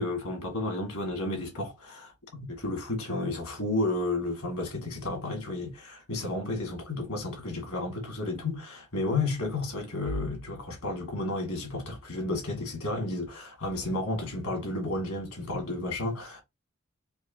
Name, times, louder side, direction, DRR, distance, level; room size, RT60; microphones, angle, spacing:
voice 1, 0.0-16.4, left 2 dB, 75° left, 1.7 m, -32 dB
4.5 x 2.7 x 2.7 m
head